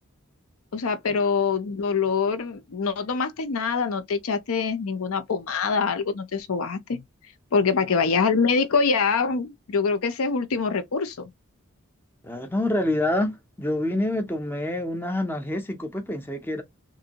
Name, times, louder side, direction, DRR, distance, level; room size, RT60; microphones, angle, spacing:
voice 1, 0.7-7.0 7.5-11.3, left 5 dB, 70° left, 0.5 m, -24 dB
voice 2, 12.2-16.6, left 1 dB, 10° left, 0.5 m, -27 dB
3.0 x 2.6 x 2.8 m
head